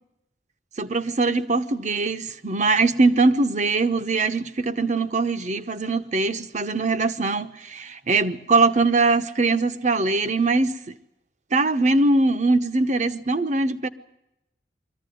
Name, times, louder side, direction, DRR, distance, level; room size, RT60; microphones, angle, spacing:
voice 1, 0.8-11.0 11.5-13.9, right 3 dB, 40° right, 1.0 m, -22 dB
22.0 x 15.0 x 9.3 m
head